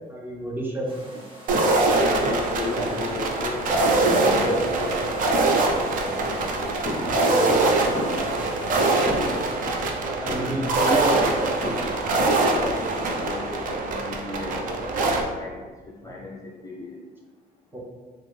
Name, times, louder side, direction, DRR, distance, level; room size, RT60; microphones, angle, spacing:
voice 1, 0.1-0.9 2.7-3.0 4.4-4.7 8.4-9.0 10.2-11.4 17.7-17.8, right 1 dB, 10° right, -3 dB, 0.6 m, -30 dB
sound 1, 0.9-9.5, right 1 dB, 30° right, 1.4 m, -47 dB
sound 2, 1.5-15.2, right 2 dB, 50° right, 0.4 m, -23 dB
voice 2, 1.7-5.0 5.9-7.4 9.8-9.9 12.3-15.0 15.3-15.6 16.0-16.9, left 3 dB, 20° left, -5 dB, 0.3 m, -35 dB
sound 3, 6.8-7.6 7.9-9.9 10.1-11.0 11.6-12.6 12.8-13.4, left 1 dB, 5° left, 1.1 m, -35 dB
3.3 x 2.0 x 3.1 m, 1.5 s
cardioid pair, 110°, 17 cm